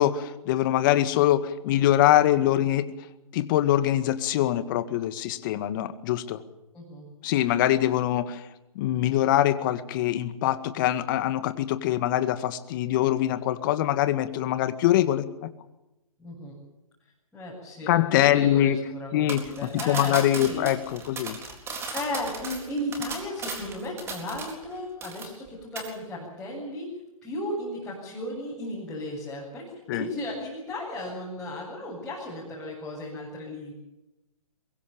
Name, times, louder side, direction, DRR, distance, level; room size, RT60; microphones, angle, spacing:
voice 1, 0.0-2.9 3.3-6.4 7.2-8.5 8.8-15.5 17.9-18.8 19.1-21.4 29.9-30.1, left 13 dB, 35° left, 11 dB, 2.0 m, -23 dB
voice 2, 6.7-7.1 16.2-16.6 17.3-20.6 21.8-26.9 27.2-33.7, left 1 dB, 5° left, -7 dB, 7.8 m, -35 dB
sound 1, 19.3-24.7 25.0-25.5 25.8-25.9, right 4 dB, 15° right, 4.0 m, -36 dB
23.5 x 22.0 x 7.1 m, 0.95 s
hypercardioid pair, 140°, 18 cm